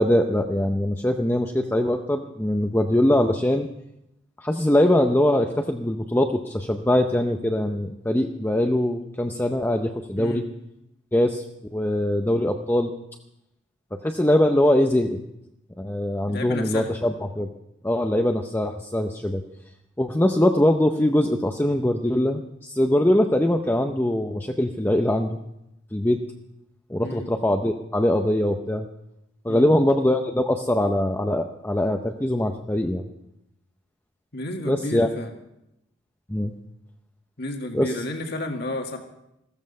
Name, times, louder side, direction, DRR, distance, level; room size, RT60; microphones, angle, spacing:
voice 1, 0.0-3.7 4.4-10.4 11.1-11.4 11.7-12.9 13.9-15.2 15.8-17.5 17.8-19.4 20.0-25.4 25.9-26.2 26.9-28.9 29.4-33.1 34.7-35.1 36.3-36.5 37.7-37.9, left 1 dB, 10° left, 4 dB, 0.6 m, -22 dB
voice 2, 16.3-16.9 27.0-27.3 29.5-29.7 34.3-35.3 37.4-39.0, left 2 dB, 55° left, 3 dB, 1.9 m, -32 dB
15.0 x 14.0 x 5.5 m, 0.85 s
head